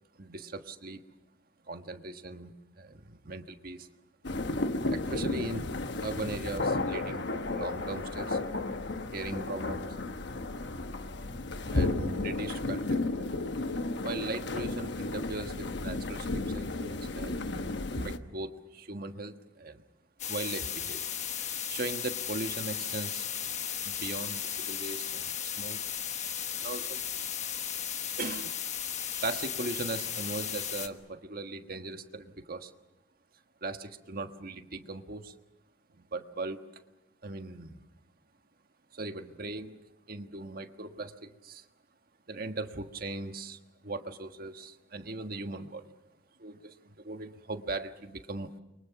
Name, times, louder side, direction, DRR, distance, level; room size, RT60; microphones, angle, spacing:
voice 1, 0.2-1.1 1.6-3.9 4.9-5.7 6.0-8.4 9.1-10.0 11.7-13.3 14.0-19.8 20.3-21.1 21.7-23.3 23.8-25.8 26.6-27.0 28.2-28.6 29.0-32.7 33.6-35.3 35.9-36.7 37.2-37.8 38.9-39.8 40.1-41.7 42.3-45.9 46.4-48.5, right 2 dB, 50° right, 7 dB, 1.5 m, -39 dB
sound 1, 4.2-18.2, left 2 dB, 65° left, 1.1 m, -33 dB
sound 2, 20.2-30.9, left 9 dB, 40° left, 1.3 m, -35 dB
29.5 x 23.5 x 5.9 m, 0.99 s
head